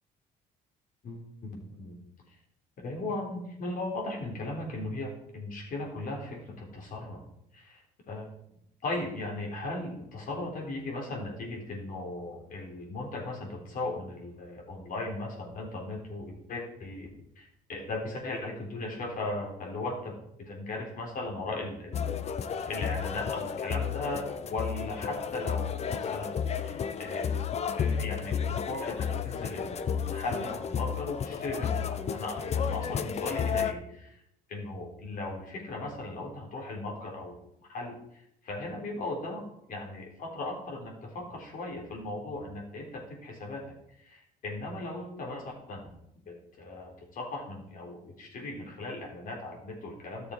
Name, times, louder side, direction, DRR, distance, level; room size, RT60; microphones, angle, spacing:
voice 1, 1.0-2.0 2.3-2.4 2.8-7.2 7.5-8.3 8.8-17.1 17.4-27.4 27.7-34.2 34.5-37.4 37.6-39.4 39.7-43.6 44.0-45.8 46.3-50.3, left 2 dB, 55° left, 0 dB, 3.6 m, -37 dB
sound 1, 21.9-33.7, left 7 dB, 40° left, 0.6 m, -32 dB
13.5 x 6.8 x 4.7 m, 0.77 s
cardioid pair, 110°, 17 cm